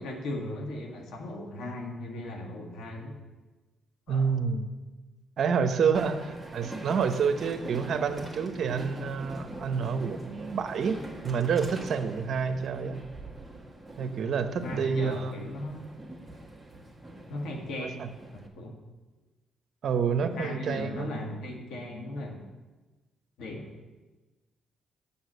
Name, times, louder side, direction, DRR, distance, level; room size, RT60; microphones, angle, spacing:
voice 1, 0.0-3.2 4.1-4.3 14.6-15.9 17.3-18.1 18.3-18.8 20.2-22.4 23.4-23.7, left 1 dB, 80° left, 2 dB, 1.8 m, -37 dB
voice 2, 4.1-4.7 5.4-11.0 11.2-13.0 14.0-15.3 17.8-18.1 19.8-21.1, right 6 dB, 60° right, 9 dB, 0.8 m, -28 dB
Train, 5.9-18.5, right 1 dB, 5° right, 1.6 m, -43 dB
7.2 x 7.1 x 8.0 m, 1.2 s
cardioid pair, 90°, 0 cm